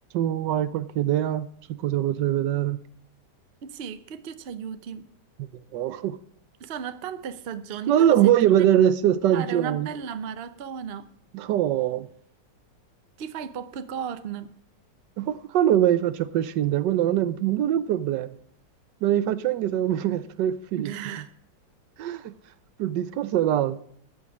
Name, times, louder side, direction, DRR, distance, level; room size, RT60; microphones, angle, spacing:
voice 1, 0.1-1.5 1.8-2.8 5.4-6.2 7.9-9.9 11.3-12.1 15.2-18.3 19.0-20.9 22.0-22.3 22.8-23.8, right 11 dB, 75° right, 1.3 m, -23 dB
voice 2, 3.6-5.1 6.6-8.3 9.3-11.1 13.2-14.5 20.8-21.3, right 7 dB, 50° right, 0.7 m, -35 dB
13.5 x 5.2 x 8.4 m
omnidirectional pair, 1.9 m